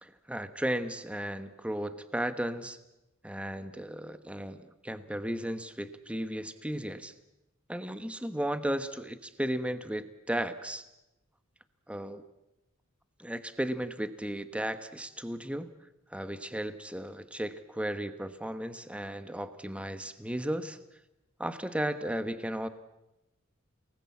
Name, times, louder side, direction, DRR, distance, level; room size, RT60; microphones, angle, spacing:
voice 1, 0.0-2.8 3.2-7.1 7.7-10.8 11.9-12.2 13.2-15.7 16.1-20.8 21.4-22.7, right 1 dB, 5° right, 11 dB, 1.1 m, -35 dB
30.0 x 19.5 x 8.5 m, 0.96 s
head